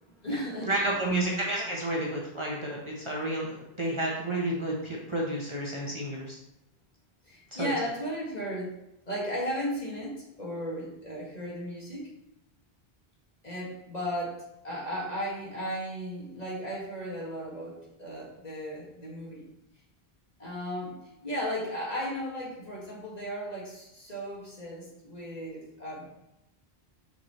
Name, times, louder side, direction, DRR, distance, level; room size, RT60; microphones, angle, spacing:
voice 1, 0.0-0.7 7.2-8.7 9.1-12.1 13.4-19.5 20.4-26.1, equal, 40° left, -5 dB, 1.9 m, -35 dB
voice 2, 0.7-6.4 7.6-7.7, right 1 dB, 30° right, -4 dB, 1.0 m, -31 dB
5.8 x 5.8 x 3.1 m, 0.87 s
omnidirectional pair, 1.1 m